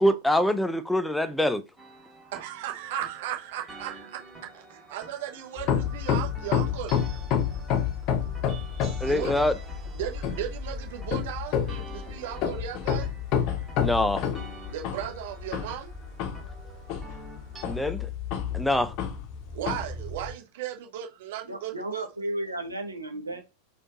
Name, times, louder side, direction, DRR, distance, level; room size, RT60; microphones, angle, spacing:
voice 1, 0.0-1.6 9.0-9.5 13.8-14.3 17.6-18.1 18.5-18.9, left 1 dB, 5° left, 0.4 m, -24 dB
sound 1, 1.8-17.7, right 2 dB, 15° right, 1.1 m, -48 dB
voice 2, 2.3-4.2 4.5-7.0 9.0-9.4 9.9-13.1 14.7-15.9 19.5-22.1, right 11 dB, 55° right, 0.9 m, -36 dB
sound 2, 5.6-20.3, left 8 dB, 40° left, 0.7 m, -29 dB
voice 3, 21.5-23.4, right 1 dB, 80° right, 0.8 m, -34 dB
4.3 x 2.5 x 2.9 m
figure-of-eight pair, 90°, 0 cm